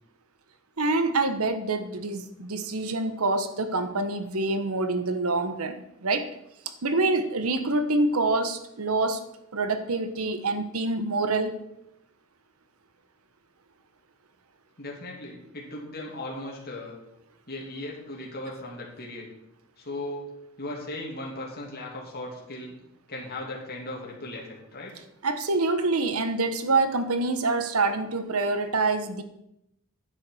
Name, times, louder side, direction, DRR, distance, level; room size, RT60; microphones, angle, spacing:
voice 1, 0.8-5.8 6.0-6.3 6.8-9.2 9.5-11.6 25.2-29.2, right 3 dB, 80° right, 10 dB, 1.1 m, -26 dB
voice 2, 14.8-17.0 17.5-19.3 19.8-20.3 20.6-22.8 23.1-24.4 24.7-24.9, left 1 dB, 45° left, -2 dB, 2.7 m, -37 dB
10.5 x 7.9 x 6.4 m, 0.83 s
head